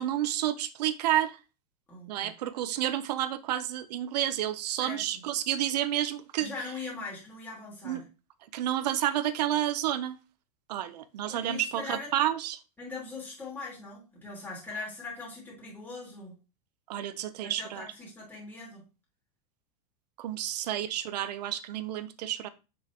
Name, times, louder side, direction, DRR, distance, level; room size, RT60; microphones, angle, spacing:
voice 1, 0.0-1.4 2.1-6.5 7.8-8.0 8.5-10.2 10.7-12.6 16.9-17.9 20.2-22.5, right 12 dB, 80° right, 12 dB, 0.8 m, -30 dB
voice 2, 1.9-2.3 4.7-5.0 6.4-8.0 11.3-12.1 12.8-16.4 17.6-18.8, left 3 dB, 10° left, -4 dB, 2.6 m, -41 dB
7.2 x 6.2 x 3.0 m, 0.30 s
supercardioid pair, 155°, 20 cm